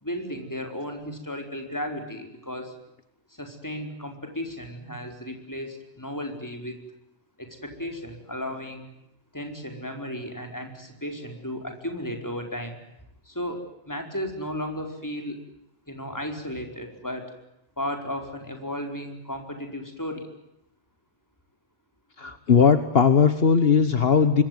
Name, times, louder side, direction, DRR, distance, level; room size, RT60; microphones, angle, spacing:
voice 1, 0.0-2.7 3.4-6.8 7.4-8.9 9.3-12.8 13.3-15.4 15.9-17.3 17.8-20.2, equal, 15° left, 4 dB, 4.8 m, -34 dB
voice 2, 22.2-24.4, left 6 dB, 60° left, 11 dB, 1.6 m, -18 dB
25.5 x 22.5 x 9.3 m, 0.81 s
omnidirectional pair, 1.1 m